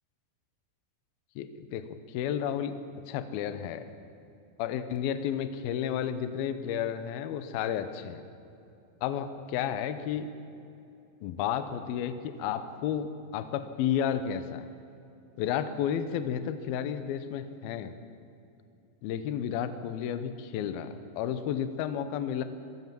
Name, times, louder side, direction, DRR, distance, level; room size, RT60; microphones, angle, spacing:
voice 1, 1.4-2.7 3.1-3.9 4.6-8.2 9.0-10.3 11.2-14.6 15.4-17.9 19.0-22.4, left 9 dB, 75° left, 10 dB, 2.4 m, -32 dB
23.0 x 15.0 x 7.7 m, 2.7 s
omnidirectional pair, 5.3 m